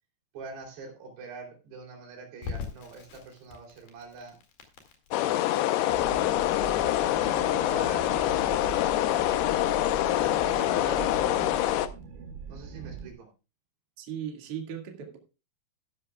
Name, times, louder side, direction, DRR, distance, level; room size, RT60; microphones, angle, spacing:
voice 1, 0.3-4.4 5.5-6.1 6.7-9.6 10.1-11.5 12.5-13.3, right 4 dB, 65° right, 5.2 m, -44 dB
Crackle, 2.4-13.2, left 5 dB, 55° left, 3.6 m, -46 dB
sound 1, 5.1-11.9, left 14 dB, 80° left, 2.4 m, -25 dB
sound 2, 5.9-13.1, right 6 dB, 90° right, 3.7 m, -41 dB
voice 2, 14.0-15.2, right 9 dB, 45° right, 2.1 m, -37 dB
13.5 x 11.5 x 2.3 m
omnidirectional pair, 5.2 m